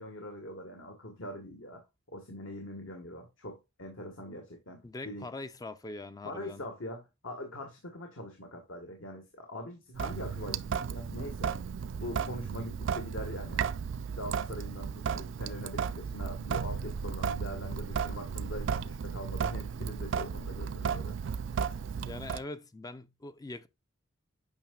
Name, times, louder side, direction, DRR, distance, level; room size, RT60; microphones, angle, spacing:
voice 1, 0.0-1.8 2.1-5.3 6.2-11.5 12.0-13.6 14.2-21.2, left 1 dB, 70° left, 1.6 m, -42 dB
voice 2, 4.8-6.6 22.1-23.7, left 2 dB, 20° left, 0.4 m, -42 dB
Sink (filling or washing) / Drip, 10.0-22.4, right 6 dB, 65° right, 0.3 m, -34 dB
8.9 x 5.6 x 2.3 m
head